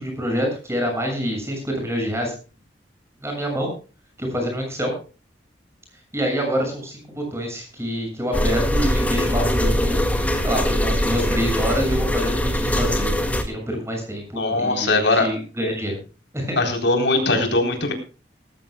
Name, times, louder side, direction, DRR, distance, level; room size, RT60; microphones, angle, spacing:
voice 1, 0.0-2.3 3.2-3.7 4.2-4.9 6.1-10.0 10.4-13.1 13.5-16.0 16.3-16.6, equal, 15° right, 2 dB, 6.9 m, -26 dB
sound 1, 8.3-13.4, equal, 10° left, 2.0 m, -22 dB
voice 2, 14.3-15.3 16.6-17.9, left 2 dB, 70° left, 4 dB, 3.9 m, -20 dB
20.0 x 14.5 x 2.3 m, 0.35 s
head